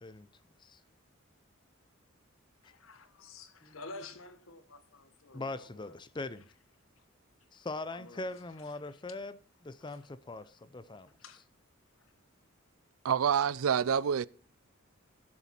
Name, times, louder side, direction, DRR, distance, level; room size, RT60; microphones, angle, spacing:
voice 1, 2.6-6.0 7.9-8.3 8.8-9.0 9.9-10.1 11.2-11.4 12.0-12.1, left 3 dB, 80° left, 1.3 m, -50 dB
voice 2, 5.3-6.5 7.5-11.1, left 2 dB, 20° left, 0.5 m, -41 dB
voice 3, 13.0-14.3, right 7 dB, 85° right, 0.4 m, -27 dB
17.0 x 7.0 x 4.3 m
head